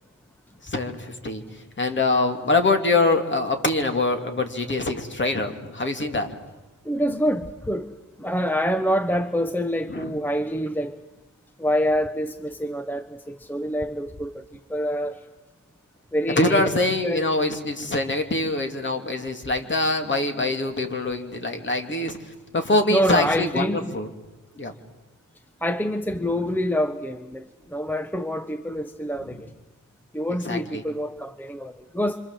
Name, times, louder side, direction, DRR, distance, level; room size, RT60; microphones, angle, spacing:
voice 1, 0.6-1.4 1.8-6.3 9.9-10.1 16.4-24.1 24.6-24.7 26.2-26.3 29.3-29.4 30.4-30.8, left 2 dB, 35° left, 5 dB, 2.8 m, -24 dB
voice 2, 6.8-7.9 8.2-11.0 11.6-14.4 14.7-15.2 16.1-16.7 17.0-17.3 22.9-23.9 25.6-29.5 30.1-32.2, equal, 5° left, 10 dB, 0.8 m, -26 dB
26.5 x 26.0 x 7.6 m, 1.1 s
wide cardioid pair, 115°, 33 cm